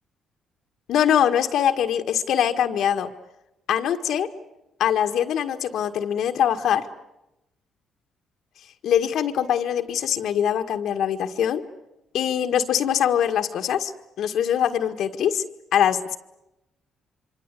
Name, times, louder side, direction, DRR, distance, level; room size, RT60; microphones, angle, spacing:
voice 1, 0.9-3.1 3.7-4.3 4.8-6.9 8.8-11.6 12.1-13.9 14.2-15.4 15.7-16.2, left 9 dB, 75° left, 6 dB, 1.7 m, -23 dB
25.5 x 24.5 x 8.4 m, 0.91 s
cardioid pair, 90°, 0 cm